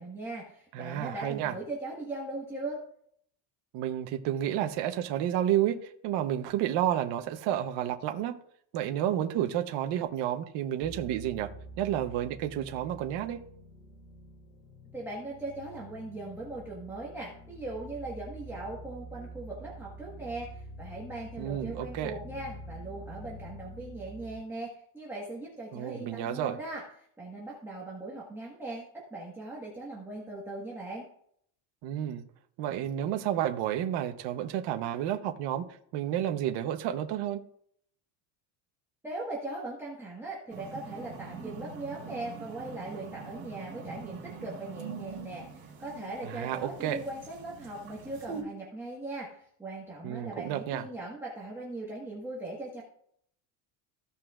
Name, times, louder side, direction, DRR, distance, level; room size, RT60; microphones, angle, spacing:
voice 1, 0.0-2.8 14.9-26.8 27.2-31.1 39.0-52.8, right 2 dB, 5° right, -6 dB, 1.4 m, -39 dB
voice 2, 0.7-1.5 3.7-8.4 8.7-11.5 11.8-13.4 21.4-22.1 25.7-26.6 31.8-32.2 32.6-35.6 35.9-37.4 46.2-47.0 50.0-50.8, right 11 dB, 55° right, 5 dB, 1.0 m, -31 dB
sound 1, 10.8-24.4, right 1 dB, 70° left, 2.2 m, -47 dB
sound 2, 40.5-48.4, right 5 dB, 25° right, 2.7 m, -44 dB
15.5 x 5.6 x 2.5 m, 0.65 s
cardioid pair, 165°, 50 cm